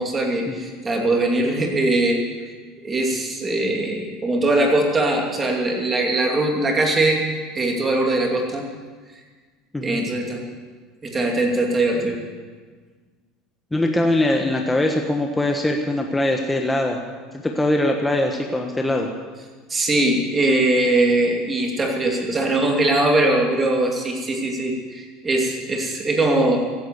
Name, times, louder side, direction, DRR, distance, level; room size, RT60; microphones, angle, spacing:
voice 1, 0.0-2.2 2.8-7.2 7.5-8.6 9.8-10.4 11.0-12.2 19.7-26.6, right 2 dB, 20° right, 1 dB, 2.7 m, -21 dB
voice 2, 13.7-17.0 17.4-19.1, left 1 dB, 10° left, 2 dB, 1.3 m, -22 dB
15.5 x 9.8 x 8.2 m, 1.5 s
supercardioid pair, 115°, 0 cm